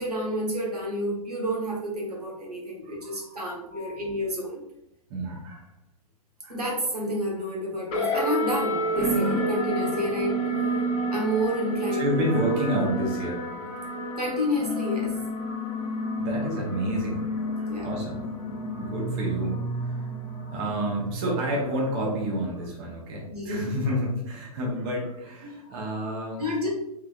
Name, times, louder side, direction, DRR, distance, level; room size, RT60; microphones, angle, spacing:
voice 1, 0.0-4.6 6.5-10.4 11.1-12.0 14.2-15.1 17.7-17.9 23.3-23.8 25.4-25.6 26.4-26.7, equal, 90° right, -3 dB, 1.1 m, -29 dB
voice 2, 2.9-4.0 5.1-5.7 6.4-6.6 11.9-14.1 16.2-17.3 17.6-26.4, equal, 40° right, -2 dB, 1.1 m, -30 dB
sound 1, 7.9-22.7, right 1 dB, 30° left, 0.8 m, -30 dB
3.5 x 3.1 x 2.3 m, 0.81 s
figure-of-eight pair, 110°, 20 cm